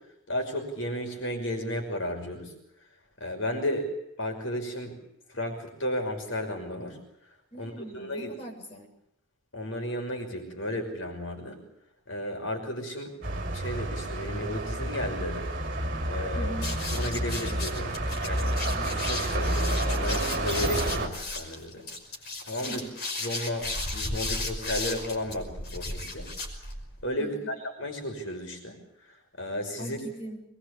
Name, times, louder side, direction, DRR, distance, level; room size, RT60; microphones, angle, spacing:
voice 1, 0.3-2.5 3.2-3.9 4.2-5.0 5.3-7.0 7.6-8.3 9.5-11.6 12.1-13.2 13.5-15.4 16.1-16.5 16.9-21.9 22.5-22.8 23.2-26.3 27.0-28.8 29.4-30.0, left 1 dB, 75° left, 4 dB, 5.9 m, -33 dB
voice 2, 7.5-8.9 16.3-16.7 22.6-22.9 27.2-27.5 29.8-30.4, right 1 dB, 30° left, 0 dB, 7.1 m, -40 dB
sound 1, 13.2-21.1, right 1 dB, 45° right, 4.8 m, -30 dB
sound 2, 16.6-27.0, left 2 dB, 50° left, 5.6 m, -35 dB
24.5 x 22.0 x 8.5 m, 0.81 s
head